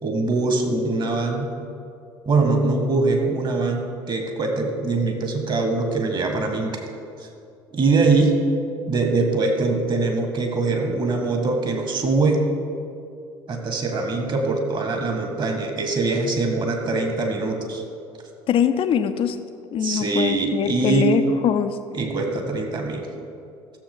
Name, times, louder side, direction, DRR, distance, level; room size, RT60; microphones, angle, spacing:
voice 1, 0.0-1.5 2.3-6.8 7.2-7.3 7.7-8.4 8.9-12.5 13.5-17.8 19.8-21.1 21.9-23.1, right 3 dB, 35° right, 4 dB, 1.9 m, -23 dB
voice 2, 18.5-19.4 19.7-21.8, left 8 dB, 45° left, 9 dB, 0.7 m, -22 dB
14.5 x 7.3 x 5.5 m, 2.5 s
figure-of-eight pair, 55°, 13 cm